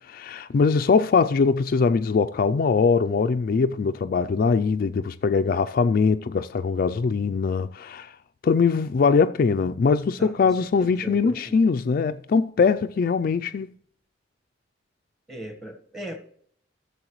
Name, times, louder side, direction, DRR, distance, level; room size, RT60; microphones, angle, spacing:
voice 1, 0.1-8.1 8.4-13.7, left 5 dB, 50° left, 0.3 m, -22 dB
voice 2, 10.2-11.6 15.3-16.2, equal, ahead, 1.2 m, -38 dB
14.5 x 7.1 x 3.0 m
head